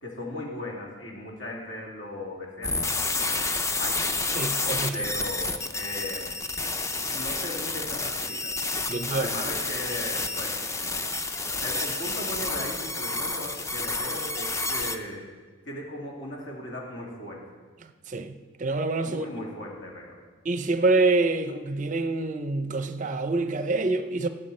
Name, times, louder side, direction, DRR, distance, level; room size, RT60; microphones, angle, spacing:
voice 1, 0.0-3.5 3.8-4.1 4.9-6.4 7.1-8.5 9.1-10.7 11.6-15.3 15.7-17.4 19.0-20.2, left 1 dB, 60° left, 2.7 m, -37 dB
sound 1, 2.6-15.0, left 3 dB, 15° left, 0.4 m, -30 dB
voice 2, 4.3-5.1 8.9-9.3 18.1-19.3 20.4-24.3, right 3 dB, 40° right, 0.5 m, -26 dB
16.5 x 8.2 x 4.3 m
head